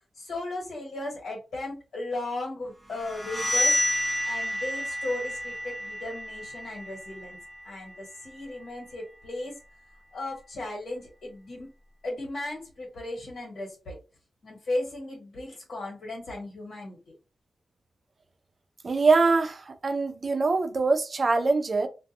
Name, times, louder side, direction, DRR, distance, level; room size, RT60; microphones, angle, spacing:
voice 1, 0.1-3.8 4.2-7.4 7.6-9.5 10.1-11.7 12.0-14.0 14.4-17.1, left 2 dB, 80° left, 1.4 m, -36 dB
sound 1, 2.9-8.6, left 1 dB, 10° left, 0.6 m, -30 dB
voice 2, 18.8-21.9, right 3 dB, 40° right, 0.4 m, -23 dB
2.5 x 2.2 x 2.7 m
wide cardioid pair, 125°, 0 cm